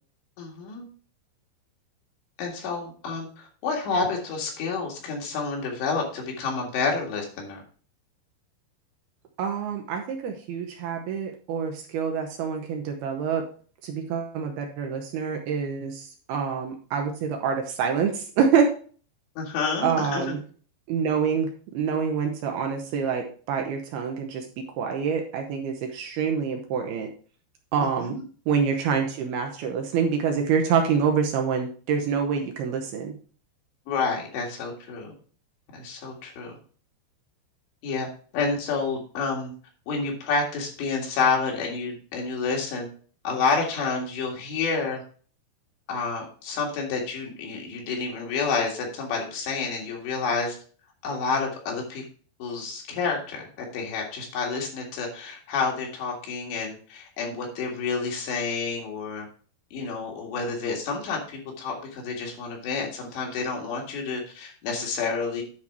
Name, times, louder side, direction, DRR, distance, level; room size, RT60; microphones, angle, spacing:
voice 1, 0.4-0.9 2.4-7.6 19.4-20.3 27.8-28.2 33.9-35.1 35.7-36.5 37.8-38.1 38.3-39.5 39.9-42.9 43.2-45.0 45.9-50.6 51.0-52.0 52.4-59.3 59.7-65.4, left 4 dB, 75° left, -1 dB, 4.2 m, -29 dB
voice 2, 9.4-13.4 13.8-18.7 19.8-20.4 20.9-21.5 21.7-24.5 24.8-27.1 27.7-28.2 28.5-33.1, right 6 dB, 75° right, 3 dB, 2.6 m, -26 dB
9.9 x 4.5 x 4.8 m, 0.42 s
omnidirectional pair, 5.1 m